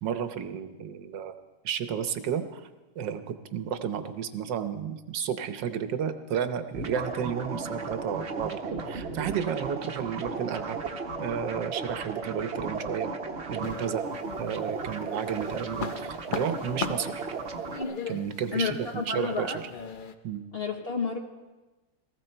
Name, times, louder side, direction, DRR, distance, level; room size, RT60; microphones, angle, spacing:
voice 1, 0.0-1.3 1.6-2.7 3.0-10.8 11.2-13.1 13.5-14.1 14.4-17.1 18.1-18.8 19.1-19.6 20.2-20.4, right 8 dB, 80° right, 9 dB, 1.5 m, -32 dB
sound 1, 6.7-17.8, right 4 dB, 45° right, 1.0 m, -35 dB
sound 2, 13.6-14.6 15.0-20.1, left 5 dB, 80° left, 0.4 m, -38 dB
voice 2, 18.5-19.6 20.5-21.2, left 5 dB, 40° left, 3 dB, 1.0 m, -30 dB
18.5 x 15.0 x 4.4 m, 1.2 s
omnidirectional pair, 2.0 m